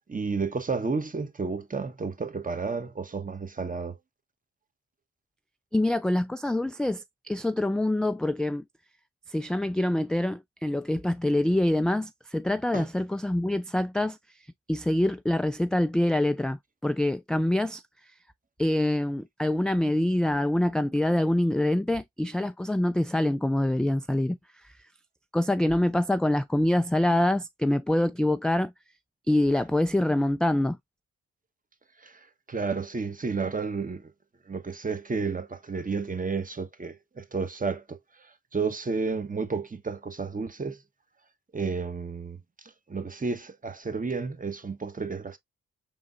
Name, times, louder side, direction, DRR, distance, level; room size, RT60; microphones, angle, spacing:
voice 1, 0.1-4.0 12.7-12.9 32.0-34.1 34.5-40.8 41.5-45.4, right 4 dB, 25° right, 1.0 m, -32 dB
voice 2, 5.7-8.6 9.3-14.2 14.7-17.8 18.6-24.4 25.3-28.7 29.3-30.8, left 1 dB, ahead, 0.3 m, -25 dB
5.4 x 3.7 x 2.4 m
supercardioid pair, 45°, 31 cm